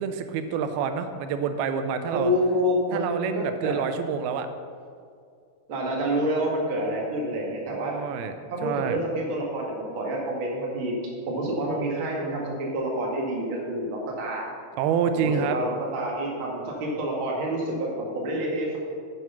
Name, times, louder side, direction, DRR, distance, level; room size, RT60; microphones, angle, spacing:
voice 1, 0.0-2.3 2.9-4.5 7.7-8.4 8.6-9.0 14.8-15.6, right 7 dB, 90° right, 8 dB, 2.6 m, -27 dB
voice 2, 2.1-3.8 5.7-7.9 8.5-10.9 11.3-14.5 15.2-18.8, right 1 dB, 40° right, -3 dB, 2.2 m, -28 dB
9.3 x 8.4 x 5.8 m, 2.2 s
omnidirectional pair, 4.3 m